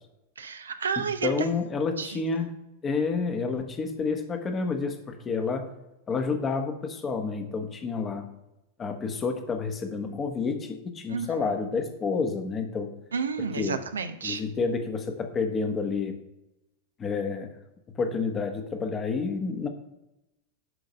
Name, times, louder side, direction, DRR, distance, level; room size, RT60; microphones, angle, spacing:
voice 1, 0.4-1.3 2.0-2.4 11.1-11.4 13.1-14.4, right 5 dB, 70° right, 8 dB, 0.7 m, -31 dB
voice 2, 1.0-2.5 2.8-5.7 6.1-8.3 8.8-12.9 13.6-13.8 14.2-16.2 17.0-17.5 17.9-19.7, left 4 dB, 25° left, 6 dB, 1.2 m, -29 dB
11.0 x 3.9 x 5.5 m, 0.92 s
figure-of-eight pair, 90°, 0 cm